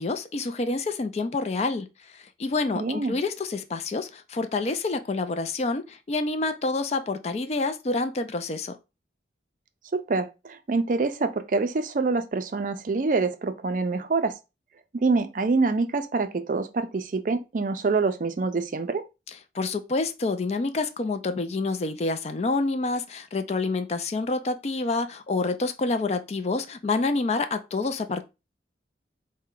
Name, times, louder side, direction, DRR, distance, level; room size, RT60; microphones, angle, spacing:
voice 1, 0.0-1.9 2.1-8.8 19.5-28.2, left 3 dB, 35° left, 0.3 m, -28 dB
voice 2, 2.7-3.2 9.9-14.3 14.9-19.0, right 3 dB, 45° right, 0.4 m, -26 dB
4.4 x 2.1 x 3.7 m
head